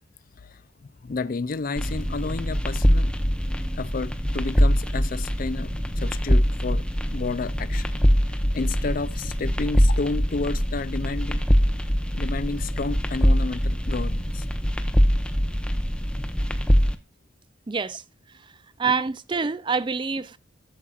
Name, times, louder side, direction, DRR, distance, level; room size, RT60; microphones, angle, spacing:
voice 1, 1.0-3.1 3.8-6.9 7.1-8.0 8.5-11.4 12.1-14.5, left 3 dB, 45° left, 0.4 m, -31 dB
sound 1, 1.8-16.9, equal, 5° left, 0.8 m, -23 dB
voice 2, 17.7-18.0 18.8-20.4, right 5 dB, 25° right, 0.4 m, -26 dB
12.0 x 7.4 x 2.4 m
head